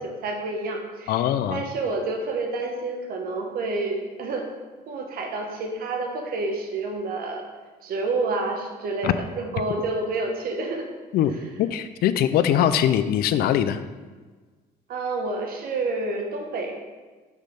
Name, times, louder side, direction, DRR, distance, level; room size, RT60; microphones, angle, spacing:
voice 1, 0.0-1.2 1.5-4.5 4.9-7.5 7.8-10.9 11.3-11.5 14.9-16.7, right 3 dB, 60° right, 2 dB, 1.0 m, -29 dB
voice 2, 1.1-1.6 9.0-9.1 11.1-11.3 11.6-13.8, left 10 dB, 65° left, 11 dB, 0.4 m, -21 dB
6.4 x 3.2 x 5.1 m, 1.4 s
cardioid pair, 110°, 17 cm